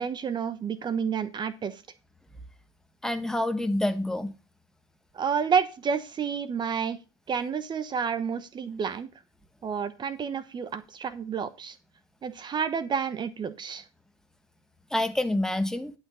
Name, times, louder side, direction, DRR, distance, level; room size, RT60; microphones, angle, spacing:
voice 1, 0.0-1.8 5.1-7.0 7.3-9.1 9.6-11.8 12.2-13.8, right 6 dB, 30° right, 1.0 m, -30 dB
voice 2, 3.0-4.3 14.9-15.9, left 1 dB, 5° left, 1.4 m, -27 dB
10.5 x 6.1 x 5.6 m
hypercardioid pair, 95°, 15 cm